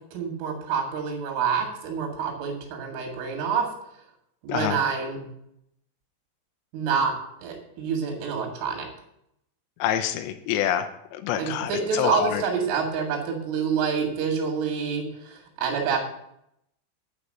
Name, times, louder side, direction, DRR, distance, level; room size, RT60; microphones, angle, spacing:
voice 1, 0.1-3.7 4.4-5.3 6.7-7.2 7.4-8.9 11.4-16.0, right 6 dB, 75° right, 2 dB, 4.4 m, -27 dB
voice 2, 9.8-12.4, left 10 dB, 90° left, 7 dB, 2.5 m, -27 dB
10.0 x 5.4 x 7.5 m, 0.77 s
omnidirectional pair, 5.8 m